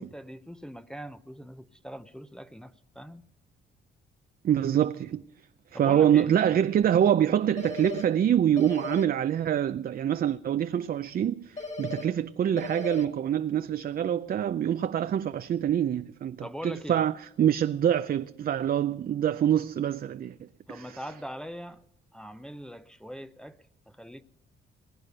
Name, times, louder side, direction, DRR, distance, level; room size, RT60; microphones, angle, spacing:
voice 1, 0.0-3.2 5.7-6.3 16.4-17.0 20.7-21.8 22.1-23.6 23.9-24.2, equal, 5° left, 0.7 m, -41 dB
voice 2, 4.4-5.2 5.8-17.1 17.4-20.3 20.7-20.9, right 10 dB, 50° right, 0.5 m, -25 dB
sound 1, 7.6-8.0 8.6-9.0 11.6-12.0 12.6-13.0, left 3 dB, 35° left, 2.8 m, -36 dB
20.5 x 9.5 x 6.7 m
cardioid pair, 90°, 20 cm